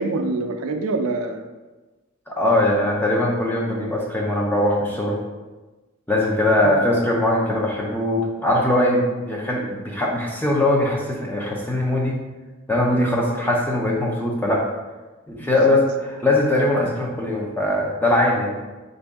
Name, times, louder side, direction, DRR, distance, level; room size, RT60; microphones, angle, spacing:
voice 1, 0.0-1.5 6.6-6.8 15.4-15.8, right 3 dB, 85° right, 5 dB, 0.4 m, -26 dB
voice 2, 2.3-5.2 6.1-12.2 12.7-14.7 15.3-15.8 16.2-18.5, left 1 dB, 10° left, -2 dB, 0.6 m, -21 dB
5.1 x 2.6 x 3.4 m, 1.2 s
head